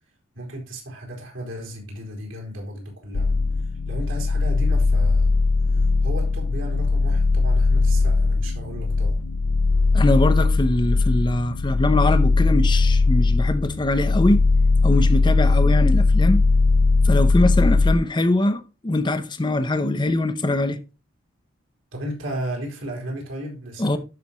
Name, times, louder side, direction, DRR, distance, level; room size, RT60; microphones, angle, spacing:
voice 1, 0.3-3.4 3.9-5.3 6.0-9.2 21.9-24.0, right 1 dB, 75° right, 4.1 m, -34 dB
Extreme Dubstep Wobbly Bass, 3.1-18.0, left 3 dB, 75° left, 0.5 m, -19 dB
voice 2, 9.9-14.5 14.8-16.4 17.0-20.8 23.8-24.0, left 1 dB, 20° left, 0.6 m, -22 dB
12.5 x 5.8 x 3.0 m
head